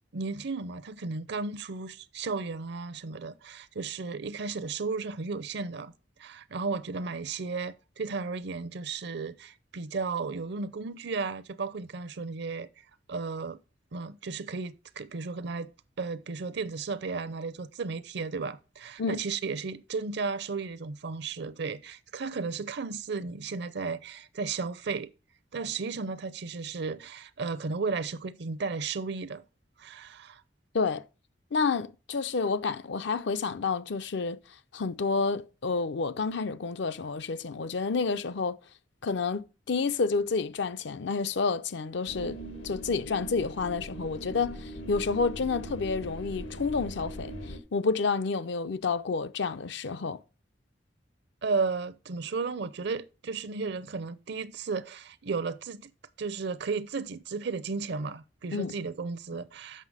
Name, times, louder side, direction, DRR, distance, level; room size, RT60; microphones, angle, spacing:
voice 1, 0.1-5.9 6.2-12.7 13.1-13.6 13.9-15.7 16.0-25.1 25.5-29.4 29.8-30.4 51.4-55.9 56.2-59.8, right 4 dB, 65° right, 0.6 m, -34 dB
voice 2, 30.7-31.1 31.5-34.4 34.7-38.6 39.0-47.4 47.7-50.2 58.5-58.7, left 4 dB, 70° left, 0.6 m, -29 dB
sound 1, 42.1-47.6, right 1 dB, 85° left, 1.6 m, -40 dB
7.7 x 5.7 x 4.8 m
head